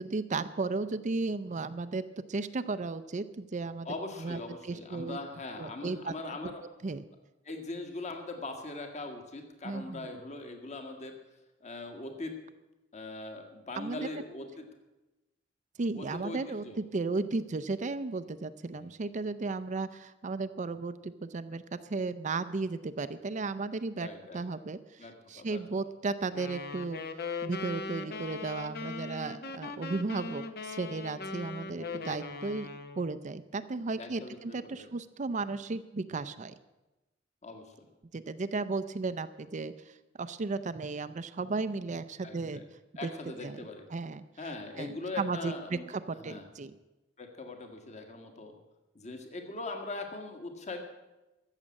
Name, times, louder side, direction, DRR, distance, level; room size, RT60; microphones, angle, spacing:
voice 1, 0.0-2.0 2.3-3.9 4.2-5.2 5.6-6.1 6.4-6.5 6.8-7.0 9.6-10.2 13.8-14.1 15.8-24.1 24.3-27.0 27.4-32.7 33.0-36.5 38.1-42.6 43.0-43.1 43.4-43.6 43.9-44.2 44.8-46.7, right 3 dB, 40° right, 12 dB, 0.5 m, -35 dB
voice 2, 3.9-6.6 7.5-11.1 11.6-12.4 12.9-14.7 15.9-16.8 18.7-18.9 24.0-24.4 25.0-25.6 31.7-32.1 34.0-34.9 37.4-37.9 42.2-42.6 43.0-43.9 44.4-45.9 46.2-46.5 47.2-48.5 49.0-50.8, left 2 dB, 35° left, 4 dB, 1.7 m, -41 dB
sound 1, 26.3-33.2, left 4 dB, 55° left, 0.9 m, -40 dB
14.0 x 7.4 x 8.5 m, 1.0 s
head